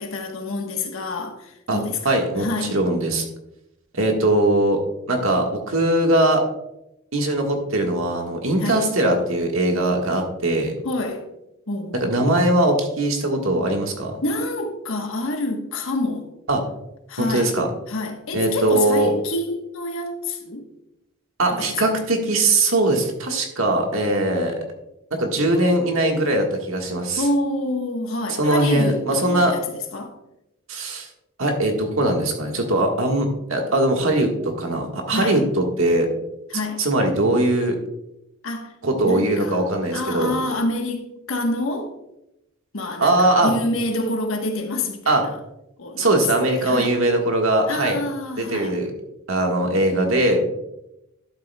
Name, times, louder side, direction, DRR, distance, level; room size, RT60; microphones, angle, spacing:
voice 1, 0.0-2.8 8.6-8.9 10.8-11.3 11.7-12.4 14.2-16.3 17.1-17.6 17.9-20.7 21.5-21.8 27.2-29.6 29.9-30.2 35.1-35.5 36.5-36.9 38.4-38.7 39.0-39.6 39.9-42.0 42.7-45.4 45.8-46.1 46.4-47.0 47.7-48.8, left 2 dB, 75° left, 1.2 m, -27 dB
voice 2, 2.0-2.5 2.7-3.2 3.9-4.8 5.1-6.4 7.1-10.7 12.0-14.1 16.5-16.6 17.2-17.7 18.3-19.1 21.4-24.5 25.1-27.2 28.4-29.5 30.7-31.1 31.4-36.1 36.8-37.8 38.8-40.3 43.0-43.5 45.1-45.2 46.0-48.0 48.4-48.9 49.3-50.4, right 1 dB, 80° right, 1.4 m, -20 dB
11.5 x 7.5 x 2.2 m
head